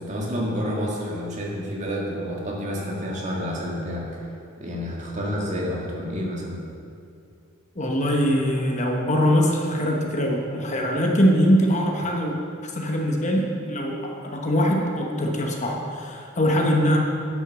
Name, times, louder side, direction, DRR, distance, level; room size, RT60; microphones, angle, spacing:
voice 1, 0.0-6.6, equal, 35° right, -3 dB, 1.9 m, -29 dB
voice 2, 7.8-17.0, equal, 35° left, 1 dB, 1.0 m, -22 dB
9.9 x 6.3 x 6.7 m, 2.5 s
head